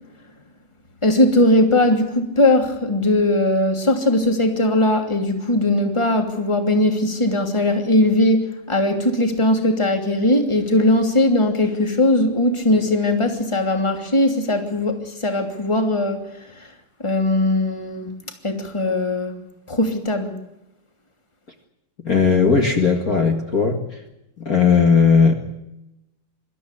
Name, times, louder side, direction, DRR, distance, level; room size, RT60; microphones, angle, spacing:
voice 1, 1.0-16.7 17.0-18.1 18.4-19.4 19.7-20.4, left 1 dB, 15° left, 2.8 m, -19 dB
voice 2, 22.0-24.0 24.4-25.3, left 5 dB, 40° left, 2.4 m, -17 dB
25.5 x 13.5 x 9.9 m
omnidirectional pair, 2.4 m